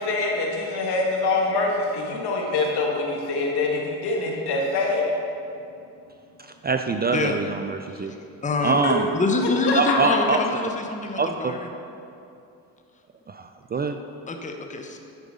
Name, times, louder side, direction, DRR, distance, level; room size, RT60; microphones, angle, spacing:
voice 1, 0.0-5.1 8.8-8.9 9.4-10.2, left 3 dB, 65° left, -1 dB, 1.8 m, -25 dB
voice 2, 6.6-8.1 8.6-9.1 9.8-10.4 11.2-11.5 13.3-14.0, right 4 dB, 25° right, 6 dB, 0.4 m, -24 dB
voice 3, 8.4-8.8 9.1-11.7 14.3-15.0, left 3 dB, 20° left, 4 dB, 0.9 m, -26 dB
10.5 x 4.8 x 5.4 m, 2.7 s
supercardioid pair, 75°, 41 cm